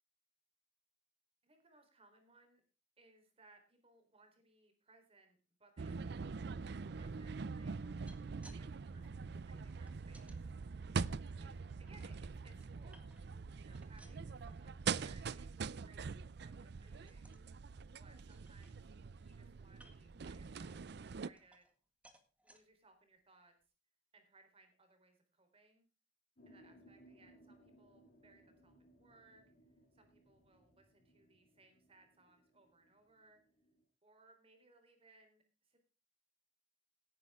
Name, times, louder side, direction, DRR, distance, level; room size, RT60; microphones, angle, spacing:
voice 1, 1.4-2.6 3.0-8.1 8.4-10.5 11.4-12.2 12.4-13.2 13.6-17.4 18.0-18.8 19.2-21.7 22.4-23.5 24.1-25.9 26.5-29.4 29.9-33.4 34.0-35.9, right 3 dB, 35° right, 6 dB, 3.9 m, -67 dB
sound 1, 5.8-21.3, right 5 dB, 65° right, 0.5 m, -44 dB
sound 2, 7.8-8.6 8.9-10.4 10.9-11.9 12.4-13.4 13.7-15.1 15.4-15.7 16.0-16.1 16.5-16.7 17.1-17.5 17.9-18.0 18.3-19.1 19.7-20.2 20.7-21.8 22.0-22.6 23.2-23.3 23.6-23.7, right 1 dB, 10° right, 1.8 m, -65 dB
sound 3, 26.4-33.8, equal, 50° left, 5.0 m, -65 dB
17.5 x 9.8 x 3.6 m, 0.33 s
head